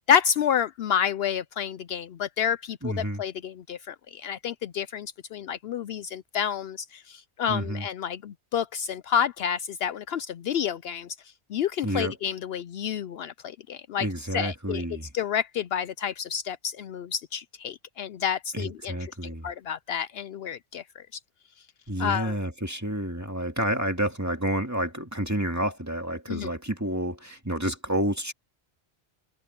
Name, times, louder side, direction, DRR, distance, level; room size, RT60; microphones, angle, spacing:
voice 1, 0.1-11.1 11.5-14.1 14.3-14.8 15.1-19.0 19.2-21.0 22.0-22.4 26.3-26.5, left 8 dB, 70° left, 0.8 m, -29 dB
voice 2, 2.8-3.2 7.5-7.9 11.8-12.2 14.0-15.1 18.5-19.5 21.9-28.3, right 1 dB, 15° right, 2.2 m, -29 dB
omnidirectional pair, 1.1 m